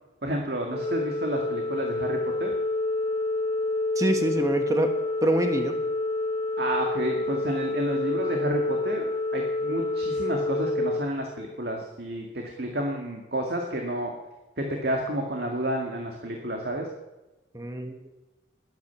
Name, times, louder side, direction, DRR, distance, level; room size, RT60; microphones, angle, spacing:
voice 1, 0.2-2.5 6.6-14.1 14.6-16.9, right 1 dB, 55° right, 1 dB, 2.1 m, -30 dB
Organ, 0.7-11.8, left 2 dB, 15° left, 5.4 m, -28 dB
voice 2, 3.9-4.9 5.2-5.7 17.5-18.1, right 1 dB, 15° right, 5 dB, 1.5 m, -25 dB
20.5 x 9.3 x 7.1 m, 1.0 s
head